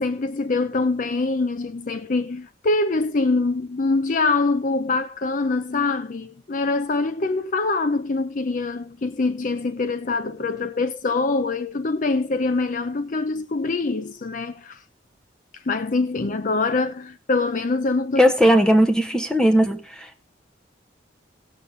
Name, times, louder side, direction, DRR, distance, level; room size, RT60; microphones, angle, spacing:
voice 1, 0.0-14.8 15.5-18.3, left 3 dB, 45° left, 0.5 m, -24 dB
voice 2, 18.2-20.3, equal, 5° left, 1.1 m, -18 dB
17.0 x 7.0 x 3.9 m
head